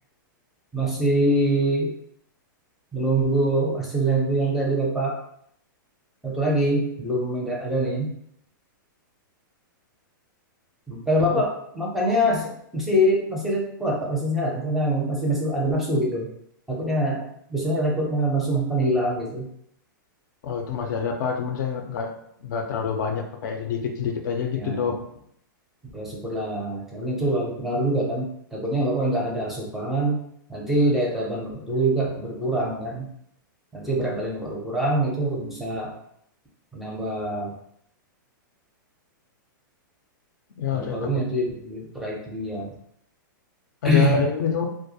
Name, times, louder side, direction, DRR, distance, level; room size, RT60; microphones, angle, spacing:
voice 1, 0.7-1.9 2.9-5.2 6.2-8.1 10.9-16.3 16.7-19.5 24.6-24.9 25.9-30.2 30.5-33.1 33.7-35.9 36.7-37.5 40.7-42.7 43.8-44.2, right 1 dB, ahead, -4 dB, 0.5 m, -24 dB
voice 2, 20.4-22.1 22.4-25.0 40.6-41.2 43.8-44.7, left 6 dB, 65° left, 4 dB, 0.4 m, -27 dB
2.2 x 2.0 x 2.7 m, 0.71 s
hypercardioid pair, 140°, 11 cm